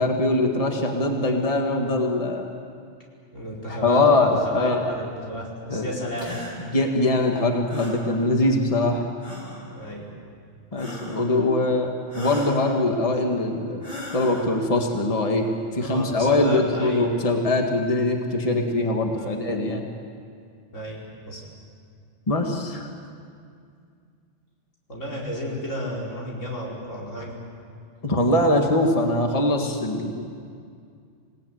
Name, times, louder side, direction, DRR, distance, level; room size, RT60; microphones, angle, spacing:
voice 1, 0.0-2.5 3.7-4.8 5.7-5.9 6.7-9.0 10.7-13.8 14.1-15.5 15.7-19.9 22.3-22.9 28.0-30.3, left 2 dB, 30° left, 2 dB, 1.8 m, -22 dB
voice 2, 3.3-6.4 9.7-10.1 15.8-17.1 19.1-19.4 20.7-21.4 24.9-27.3, equal, 85° left, -3 dB, 5.4 m, -33 dB
sound 1, 6.2-6.6 7.7-8.0 9.2-9.7 10.8-11.3 12.1-12.6 13.8-14.5, left 1 dB, 45° left, 5.4 m, -35 dB
26.5 x 18.5 x 9.3 m, 2.3 s
omnidirectional pair, 1.3 m